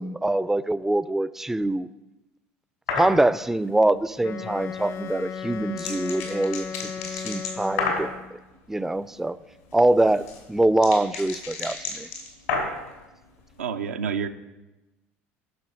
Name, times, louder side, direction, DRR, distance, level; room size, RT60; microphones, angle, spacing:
voice 1, 0.0-1.9 2.9-8.1 8.7-9.4 9.7-12.1, right 2 dB, 5° right, 16 dB, 0.4 m, -24 dB
sound 1, 2.9-3.2 5.1-8.1 9.7-12.9, left 4 dB, 80° left, 3.0 m, -31 dB
Wind instrument woodwind instrument, 4.2-8.4, left 7 dB, 45° left, 0.8 m, -35 dB
voice 2, 13.6-14.3, right 6 dB, 85° right, 7 dB, 0.6 m, -28 dB
10.5 x 5.9 x 6.4 m, 1.0 s
hypercardioid pair, 70°, 7 cm